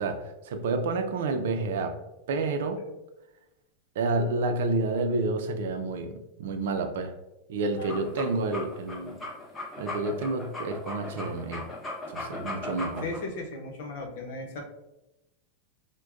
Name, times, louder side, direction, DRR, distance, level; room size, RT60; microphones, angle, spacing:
voice 1, 0.0-2.0 2.3-2.8 4.0-7.1 7.5-9.2 9.8-11.7 12.1-13.0, right 3 dB, 80° right, 6 dB, 0.5 m, -29 dB
sound 1, 7.7-13.2, left 2 dB, 10° left, 0.6 m, -37 dB
voice 2, 13.0-14.6, left 2 dB, 60° left, 1 dB, 0.8 m, -36 dB
6.1 x 2.2 x 2.5 m, 0.95 s
supercardioid pair, 175°, 0 cm